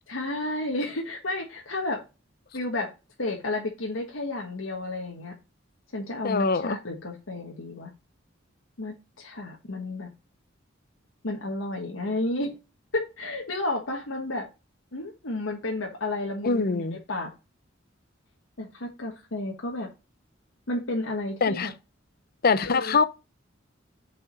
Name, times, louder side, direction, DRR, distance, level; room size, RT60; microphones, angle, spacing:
voice 1, 0.1-2.0 2.5-2.9 3.2-5.4 5.9-7.9 8.8-10.1 11.2-12.6 12.9-14.5 14.9-17.3 18.6-19.9 20.7-21.7 22.6-23.0, left 2 dB, 90° left, 1.4 m, -32 dB
voice 2, 6.2-6.8 16.4-17.0 21.4-21.7 22.4-23.0, left 4 dB, 50° left, 0.7 m, -23 dB
5.8 x 4.9 x 5.1 m
head